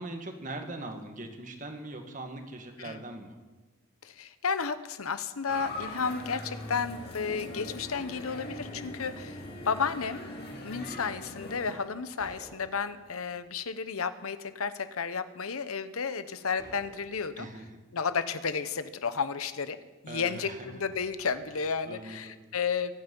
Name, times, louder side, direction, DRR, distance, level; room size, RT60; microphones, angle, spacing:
voice 1, 0.0-3.4 17.4-17.6 20.1-20.6 21.9-22.3, right 2 dB, 35° right, 5 dB, 1.8 m, -41 dB
voice 2, 4.0-10.3 10.6-17.5 17.9-19.8 20.0-22.9, left 5 dB, 85° left, 12 dB, 0.9 m, -32 dB
sound 1, 5.4-10.6, left 2 dB, 30° left, 1.4 m, -55 dB
sound 2, 5.5-11.8, left 1 dB, 45° left, 2.7 m, -41 dB
sound 3, 8.6-10.3 12.2-14.1 14.8-14.9 16.1-16.2 16.6-18.1 20.3-20.4 20.9-22.0, equal, 20° right, 3.1 m, -56 dB
23.5 x 9.4 x 5.4 m, 1.2 s
head